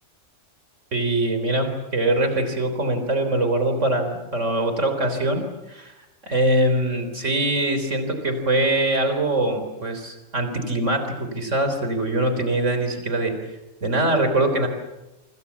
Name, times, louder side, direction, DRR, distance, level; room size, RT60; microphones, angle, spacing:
voice 1, 0.9-5.9 6.2-13.4 13.8-14.7, right 1 dB, 75° right, 7 dB, 3.9 m, -23 dB
28.5 x 25.5 x 7.2 m, 1.0 s
omnidirectional pair, 1.3 m